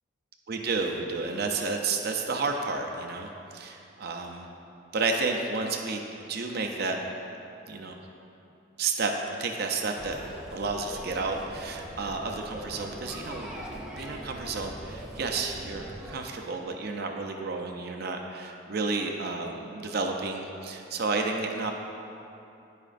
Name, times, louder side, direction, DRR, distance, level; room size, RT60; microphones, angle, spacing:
voice 1, 0.5-4.5 4.9-6.0 6.3-7.0 7.7-8.0 8.8-9.1 9.4-10.2 10.5-13.6 13.9-21.7, right 4 dB, 50° right, 3 dB, 0.5 m, -31 dB
sound 1, 9.9-16.2, equal, 5° right, 0.6 m, -41 dB
14.5 x 5.0 x 2.5 m, 2.8 s
head